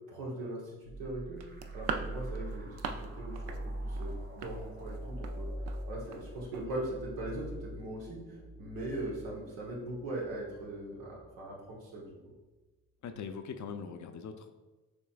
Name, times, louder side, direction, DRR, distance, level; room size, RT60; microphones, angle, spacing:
voice 1, 0.1-1.4 1.7-5.5 5.9-8.2 8.6-12.2, right 1 dB, 90° right, -3 dB, 1.2 m, -40 dB
sound 1, 0.8-12.2, right 1 dB, 25° right, 0.6 m, -43 dB
sound 2, 1.4-3.1 3.3-3.6 3.9-5.4 5.7-5.8 6.1-6.3 6.5-6.7, right 6 dB, 70° right, 0.5 m, -39 dB
voice 2, 13.0-14.5, left 6 dB, 50° left, 8 dB, 0.5 m, -41 dB
6.3 x 3.1 x 2.3 m, 1.2 s
supercardioid pair, 60°, 39 cm